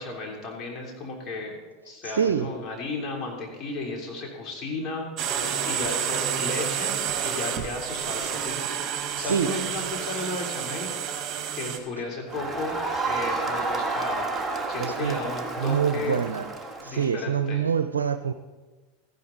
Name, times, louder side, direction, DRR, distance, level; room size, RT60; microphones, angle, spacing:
voice 1, 0.0-1.6 1.8-7.0 7.2-8.7 9.1-12.8 13.1-14.3 14.7-16.3 16.8-17.6, left 3 dB, 40° left, 0 dB, 3.2 m, -34 dB
voice 2, 2.0-2.5 9.2-9.5 14.8-15.2 15.6-16.5 16.8-18.3, right 7 dB, 85° right, 10 dB, 0.5 m, -25 dB
sound 1, 5.2-11.8, right 8 dB, 40° right, 1.6 m, -29 dB
Crowd, 12.3-17.1, right 3 dB, 10° right, 1.7 m, -30 dB
14.0 x 11.0 x 4.0 m, 1.3 s
hypercardioid pair, 90°, 0 cm